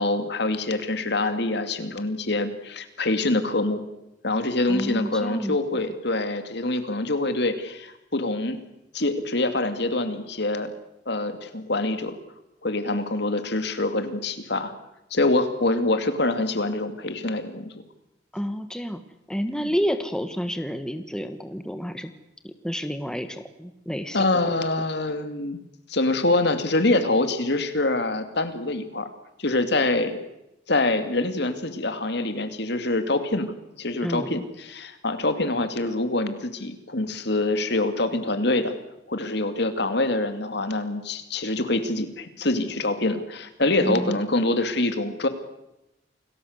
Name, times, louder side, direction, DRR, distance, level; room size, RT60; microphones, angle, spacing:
voice 1, 0.0-3.8 4.2-8.6 8.9-10.7 11.1-12.2 12.6-14.7 15.1-17.7 19.5-19.7 24.1-25.6 25.9-29.1 29.4-30.2 30.7-33.5 33.8-38.8 39.1-45.3, left 2 dB, 65° left, 9 dB, 2.5 m, -25 dB
voice 2, 4.7-5.8 18.3-19.0 19.3-22.1 22.4-24.5 34.0-34.4 43.8-44.2, equal, 5° left, 8 dB, 1.4 m, -30 dB
28.5 x 19.5 x 8.1 m, 0.91 s
head